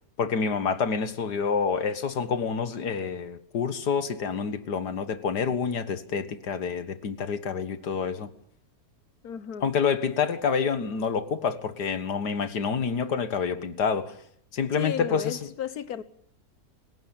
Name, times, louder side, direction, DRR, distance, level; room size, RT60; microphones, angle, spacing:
voice 1, 0.2-8.3 9.6-14.1 14.5-15.5, left 6 dB, 90° left, 2.1 m, -28 dB
voice 2, 9.2-9.6 14.7-16.0, left 9 dB, 70° left, 1.7 m, -33 dB
29.0 x 16.5 x 9.0 m
omnidirectional pair, 1.7 m